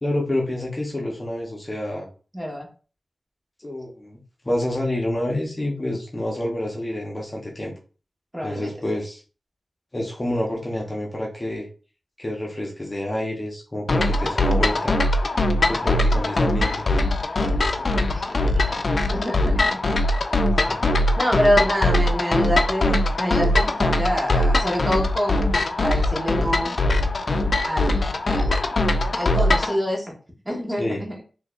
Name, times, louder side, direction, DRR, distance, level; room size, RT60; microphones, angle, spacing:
voice 1, 0.0-2.1 3.6-4.2 4.4-7.7 8.4-9.2 9.9-11.7 12.2-15.0 15.7-16.8 20.5-21.0 30.8-31.0, left 1 dB, 30° left, -1 dB, 0.9 m, -28 dB
voice 2, 2.3-2.7 8.3-8.7 15.8-15.9 17.4-18.8 19.1-19.8 21.2-25.5 25.8-26.7 27.6-28.6 29.1-30.2 30.4-31.2, equal, 20° right, -2 dB, 1.4 m, -26 dB
sound 1, 13.9-29.8, left 1 dB, 65° left, 0.4 m, -21 dB
3.9 x 2.8 x 2.5 m, 0.37 s
wide cardioid pair, 70°, 0 cm